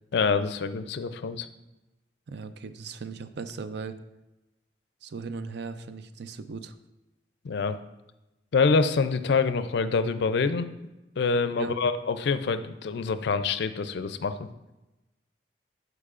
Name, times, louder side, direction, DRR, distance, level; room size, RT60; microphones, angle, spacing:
voice 1, 0.1-1.5 7.4-7.8 8.5-10.7 11.2-14.5, left 4 dB, 70° left, 11 dB, 0.4 m, -26 dB
voice 2, 2.3-4.0 5.0-6.7 11.5-11.8, right 4 dB, 70° right, 11 dB, 0.4 m, -38 dB
11.5 x 4.8 x 2.5 m, 1.0 s
head